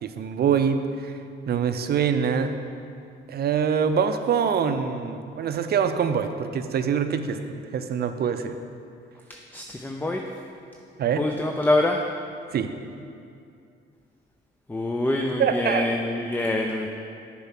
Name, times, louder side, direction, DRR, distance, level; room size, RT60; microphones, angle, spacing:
voice 1, 0.0-1.2 1.5-2.5 3.3-8.6 11.0-11.2 12.5-12.7 15.4-15.9, right 7 dB, 55° right, 8 dB, 0.5 m, -24 dB
voice 2, 9.3-10.2 11.2-12.0 14.7-16.9, left 1 dB, 10° left, 2 dB, 0.4 m, -25 dB
7.1 x 4.5 x 5.8 m, 2.5 s
cardioid pair, 90°, 20 cm